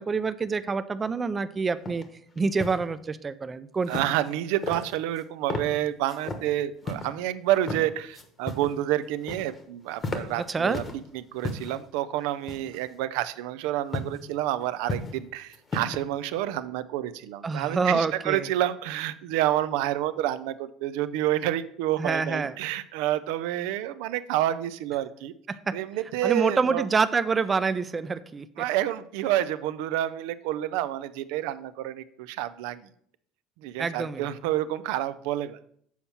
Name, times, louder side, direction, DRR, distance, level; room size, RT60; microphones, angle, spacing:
voice 1, 0.0-2.0 2.4-3.9 10.5-10.8 17.4-18.5 22.0-22.6 25.5-25.6 26.2-28.5 33.8-34.3, right 4 dB, 25° right, 13 dB, 0.4 m, -26 dB
sound 1, 1.9-2.0 2.4-2.8 3.9-4.3 4.6-5.2 5.5-5.7 6.1-6.4 6.8-7.1 7.5-7.8 8.1-8.8 9.0-9.6 9.9-11.0 11.4-11.8 12.5-12.9 13.9-14.2 14.6-15.2 15.5-16.0, left 2 dB, 30° left, 1.0 m, -34 dB
voice 2, 3.9-10.8 11.1-25.3 25.7-26.9 28.6-32.9 33.6-35.6, right 13 dB, 90° right, 13 dB, 0.4 m, -29 dB
7.1 x 4.3 x 5.7 m, 0.64 s
cardioid pair, 130°, 0 cm